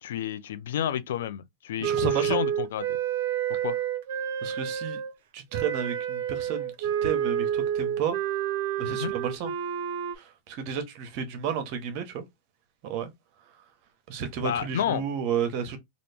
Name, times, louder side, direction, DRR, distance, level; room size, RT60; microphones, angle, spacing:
voice 1, 0.0-3.0 3.6-3.8 8.9-9.1 14.4-15.0, left 10 dB, 80° left, 0.5 m, -30 dB
voice 2, 1.8-2.4 4.4-5.0 5.3-8.2 8.8-9.5 10.2-12.2 12.8-13.1 14.1-15.8, right 7 dB, 55° right, 1.0 m, -32 dB
Wind instrument woodwind instrument, 1.8-5.1 5.5-10.2, right 9 dB, 70° right, 0.6 m, -29 dB
3.0 x 2.5 x 3.4 m
hypercardioid pair, 120°, 0 cm